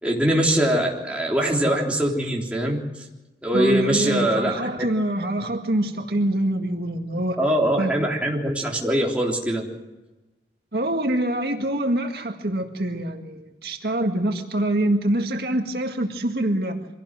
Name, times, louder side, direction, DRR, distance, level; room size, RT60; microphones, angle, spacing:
voice 1, 0.0-2.8 3.4-4.8 7.4-9.7, right 1 dB, 5° right, -2 dB, 3.6 m, -22 dB
voice 2, 3.5-7.4 7.8-7.9 10.7-16.9, right 1 dB, 65° right, 4 dB, 2.0 m, -25 dB
24.5 x 17.5 x 7.6 m, 1.1 s
head